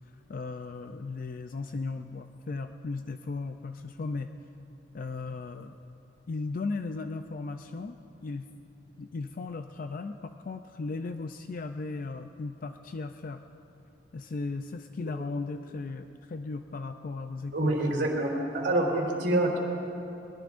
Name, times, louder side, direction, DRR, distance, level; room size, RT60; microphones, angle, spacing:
voice 1, 0.3-4.3 4.9-5.7 6.3-8.5 9.0-13.4 14.1-18.1, left 3 dB, 50° left, 7 dB, 0.4 m, -36 dB
voice 2, 17.5-19.6, right 1 dB, 70° right, -1 dB, 3.1 m, -26 dB
22.5 x 21.0 x 2.6 m, 2.9 s
head